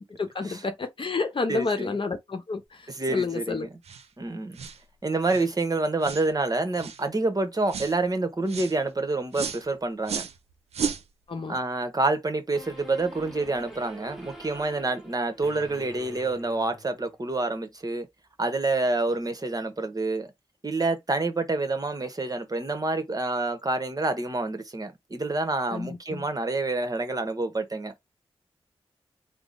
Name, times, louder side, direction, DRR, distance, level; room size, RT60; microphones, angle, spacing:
voice 1, 0.2-2.8 3.1-3.7 11.3-11.6 25.7-26.2, left 4 dB, 55° left, 0.8 m, -30 dB
voice 2, 1.5-2.0 2.9-3.7 4.2-4.6 5.0-10.3 11.5-18.1 18.4-20.3 20.6-27.9, right 2 dB, 35° right, 1.0 m, -28 dB
sound 1, 3.8-4.1 4.5-4.8 5.3-5.5 6.0-6.3 6.7-7.0 7.7-7.9 8.5-8.7 9.3-9.6 10.0-10.4 10.7-11.0, right 6 dB, 85° right, 0.5 m, -33 dB
sound 2, 12.5-17.2, right 1 dB, 5° right, 1.5 m, -46 dB
3.6 x 2.0 x 3.8 m
cardioid pair, 45°, 11 cm